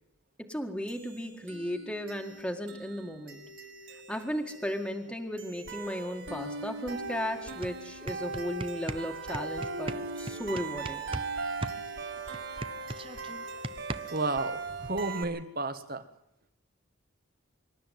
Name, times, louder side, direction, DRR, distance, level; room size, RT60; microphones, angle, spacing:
voice 1, 0.4-3.4 4.1-11.0, equal, 5° left, 3 dB, 1.9 m, -35 dB
sound 1, 0.9-15.2, right 3 dB, 65° right, 6.3 m, -39 dB
sound 2, 7.1-7.2 7.5-11.3 11.6-14.3, right 2 dB, 25° right, 1.0 m, -38 dB
voice 2, 14.1-16.0, right 2 dB, 45° right, 10 dB, 1.8 m, -32 dB
25.5 x 13.0 x 9.4 m, 0.82 s
head